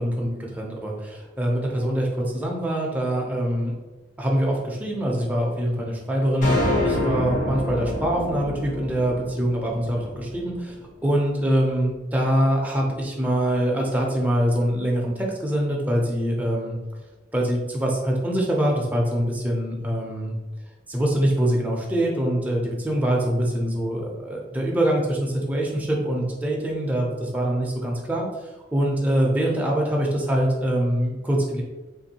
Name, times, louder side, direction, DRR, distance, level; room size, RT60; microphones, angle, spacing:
voice 1, 0.0-3.7 4.2-10.7 11.0-16.8 17.3-20.3 20.9-31.6, right 1 dB, 10° right, -2 dB, 0.5 m, -24 dB
sound 1, 6.4-10.8, left 1 dB, 45° left, 0.8 m, -27 dB
3.5 x 2.6 x 2.8 m, 1.2 s
head